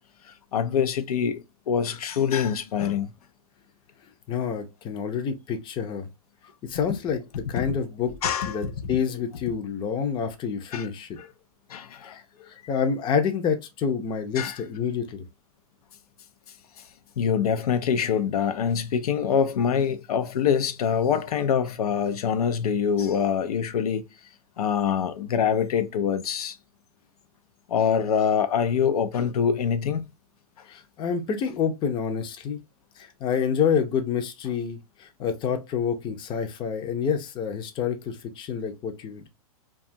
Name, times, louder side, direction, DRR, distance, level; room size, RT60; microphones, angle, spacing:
voice 1, 0.3-3.1 7.6-7.8 8.2-8.9 10.7-10.9 11.2-11.3 11.7-12.2 14.4-14.6 17.2-24.1 24.6-26.6 27.7-30.1, left 7 dB, 80° left, 0.5 m, -25 dB
voice 2, 4.3-6.1 6.7-7.2 7.5-8.1 8.5-11.2 12.0-12.2 12.7-15.2 30.7-32.6 33.0-39.3, left 7 dB, 25° left, 0.5 m, -28 dB
2.7 x 2.3 x 2.5 m
hypercardioid pair, 125°, 19 cm